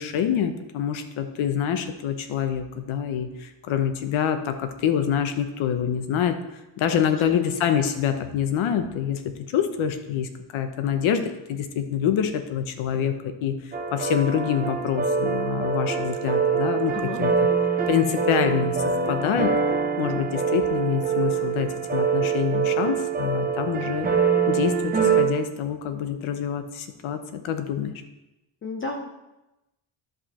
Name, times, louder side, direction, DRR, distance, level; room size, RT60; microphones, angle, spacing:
voice 1, 0.0-6.4 6.8-9.2 9.5-17.5 17.9-18.8 19.1-19.5 20.0-24.1 24.5-28.0, left 8 dB, 75° left, 8 dB, 1.0 m, -26 dB
sound 1, 13.7-25.2, right 6 dB, 20° right, 0.6 m, -24 dB
voice 2, 28.6-29.1, left 3 dB, 25° left, 2 dB, 0.6 m, -32 dB
11.5 x 5.4 x 4.2 m, 0.98 s
cardioid pair, 165°, 48 cm